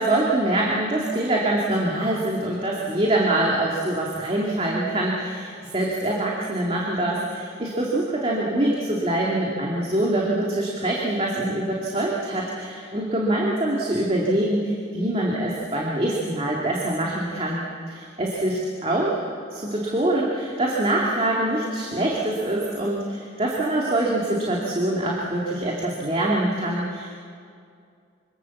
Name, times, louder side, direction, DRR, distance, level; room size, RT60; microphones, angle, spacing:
voice 1, 0.0-19.2 19.5-27.1, right 1 dB, 30° right, -3 dB, 2.6 m, -24 dB
26.0 x 25.5 x 7.2 m, 2.4 s
head